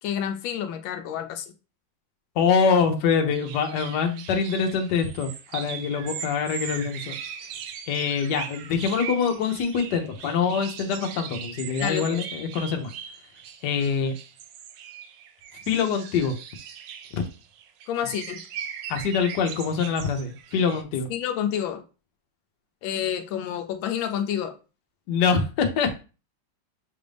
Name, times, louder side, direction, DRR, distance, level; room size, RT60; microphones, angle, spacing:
voice 1, 0.0-1.5 11.8-12.2 17.9-18.4 21.1-21.8 22.8-24.5, left 9 dB, 90° left, 1.4 m, -29 dB
voice 2, 2.4-7.2 7.9-12.9 13.6-14.1 15.7-16.3 17.1-17.2 18.9-21.1 25.1-25.9, left 6 dB, 65° left, 1.3 m, -24 dB
sound 1, 3.3-20.8, right 8 dB, 75° right, 1.2 m, -39 dB
6.3 x 2.5 x 3.3 m
omnidirectional pair, 2.1 m